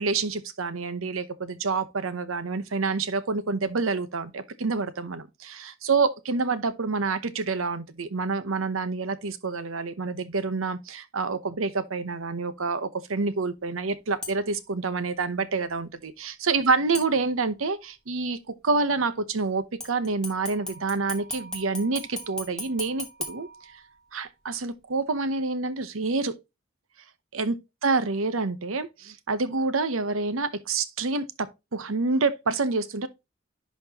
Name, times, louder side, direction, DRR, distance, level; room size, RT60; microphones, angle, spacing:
voice 1, 0.0-18.4 18.6-23.5 24.1-26.3 27.3-27.5 27.8-31.2 31.7-33.1, right 4 dB, 85° right, 0.9 m, -27 dB
sound 1, 14.2-14.7 16.9-17.7 19.8-24.2 24.6-24.7, left 1 dB, 5° left, 1.6 m, -39 dB
10.5 x 4.4 x 2.9 m
head